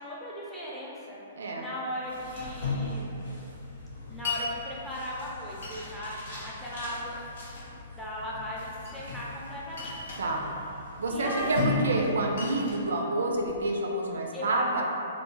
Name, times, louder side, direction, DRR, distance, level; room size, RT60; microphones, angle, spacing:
voice 1, 0.0-1.2 1.6-3.2 4.1-7.2 8.0-10.0 11.1-11.7 14.3-14.6, equal, 5° left, -8 dB, 0.5 m, -37 dB
voice 2, 1.4-1.7 10.2-10.5 11.0-14.8, right 2 dB, 75° right, 0 dB, 0.3 m, -28 dB
sound 1, 2.0-12.6, left 2 dB, 85° left, 1.3 m, -37 dB
Glass, 4.2-4.5 5.6-6.2 7.0-7.7 8.6-9.3 9.7-10.3 11.3-11.7 12.0-13.7, left 4 dB, 65° left, 0.7 m, -40 dB
2.2 x 2.1 x 3.0 m, 2.8 s
hypercardioid pair, 125°, 0 cm